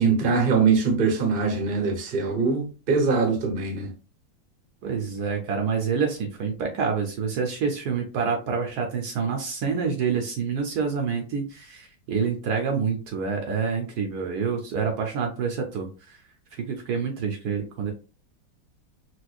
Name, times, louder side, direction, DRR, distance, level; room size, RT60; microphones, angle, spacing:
voice 1, 0.0-3.9, right 5 dB, 40° right, 0.8 m, -22 dB
voice 2, 4.8-16.2 16.5-17.9, right 6 dB, 70° right, 1.1 m, -27 dB
4.2 x 2.3 x 2.4 m
omnidirectional pair, 1.9 m